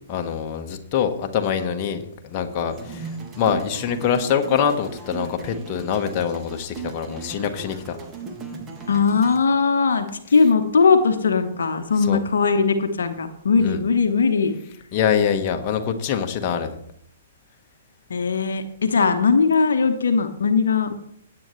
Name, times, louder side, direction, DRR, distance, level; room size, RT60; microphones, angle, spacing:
voice 1, 0.1-8.0 12.0-12.2 13.6-13.8 14.9-16.8, left 8 dB, 35° left, 5 dB, 1.2 m, -24 dB
sound 1, 2.7-9.4, right 5 dB, 20° right, 1.7 m, -37 dB
voice 2, 8.9-14.6 18.1-20.9, left 5 dB, 65° left, 8 dB, 1.0 m, -19 dB
16.5 x 8.7 x 3.2 m, 0.72 s
figure-of-eight pair, 115°, 0 cm